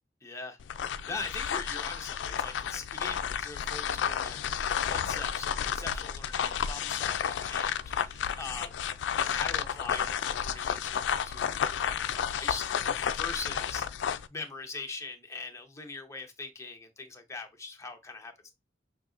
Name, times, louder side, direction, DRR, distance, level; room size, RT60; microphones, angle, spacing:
voice 1, 0.2-0.6 1.1-18.5, left 3 dB, 15° left, 0.7 m, -42 dB
sound 1, 0.6-14.3, left 8 dB, 85° left, 0.3 m, -32 dB
6.0 x 2.7 x 2.5 m
head